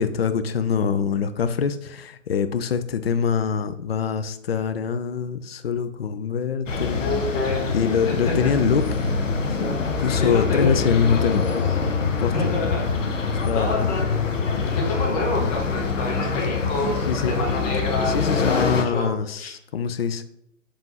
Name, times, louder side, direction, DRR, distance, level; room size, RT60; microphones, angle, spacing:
voice 1, 0.0-7.0 7.7-8.8 9.5-9.6 10.0-11.5 12.2-12.3 13.3-13.9 17.1-17.3 18.1-20.2, left 6 dB, 50° left, 11 dB, 0.4 m, -24 dB
sound 1, 6.7-18.8, left 4 dB, 75° left, 0.8 m, -25 dB
voice 2, 6.7-7.7 8.1-8.6 9.6-9.8 10.2-10.9 12.3-12.9 13.5-14.2 14.7-19.5, left 2 dB, 30° left, -1 dB, 1.2 m, -28 dB
5.2 x 3.4 x 2.8 m, 0.78 s
figure-of-eight pair, 125°, 39 cm